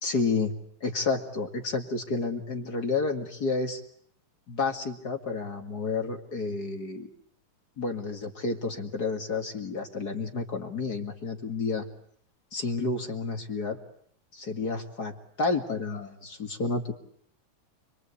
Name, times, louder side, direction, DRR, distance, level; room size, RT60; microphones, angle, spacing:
voice 1, 0.0-0.5 0.8-3.8 4.5-7.1 7.8-11.9 12.5-13.8 14.3-16.9, left 4 dB, 35° left, 4 dB, 1.9 m, -30 dB
29.5 x 22.5 x 8.4 m, 0.66 s
omnidirectional pair, 4.1 m